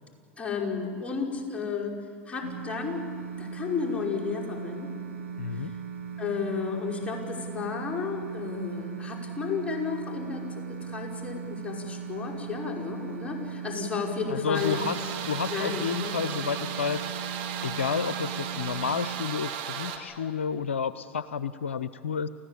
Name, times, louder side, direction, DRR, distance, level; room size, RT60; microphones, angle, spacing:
voice 1, 0.4-2.0 2.3-3.0 3.4-4.9 6.2-10.5 10.8-14.8 15.5-16.1, left 6 dB, 20° left, -2 dB, 5.3 m, -32 dB
sound 1, 2.4-19.3, right 6 dB, 80° right, 2.0 m, -38 dB
voice 2, 5.4-5.7 14.3-17.1 17.6-22.3, left 6 dB, 80° left, 15 dB, 0.6 m, -31 dB
sound 2, 14.5-20.0, right 8 dB, 60° right, 2.5 m, -35 dB
29.5 x 15.0 x 8.6 m, 2.2 s
hypercardioid pair, 85°, 6 cm